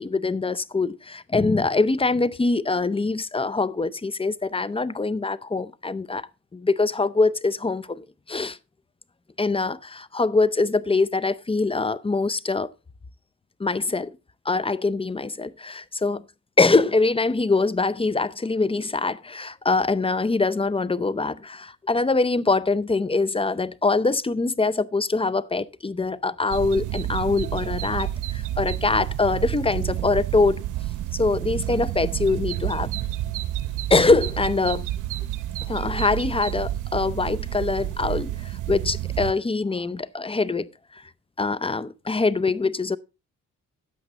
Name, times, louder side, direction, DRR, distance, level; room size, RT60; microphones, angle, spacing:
voice 1, 0.0-6.2 6.5-8.6 9.4-12.7 13.6-14.2 14.5-16.2 16.6-30.6 31.1-32.9 33.9-34.9 35.7-41.0 41.4-43.0, left 3 dB, 20° left, 0.6 m, -23 dB
sound 1, 26.5-39.3, right 13 dB, 85° right, 0.7 m, -29 dB
9.8 x 8.0 x 4.1 m
cardioid pair, 60°, 31 cm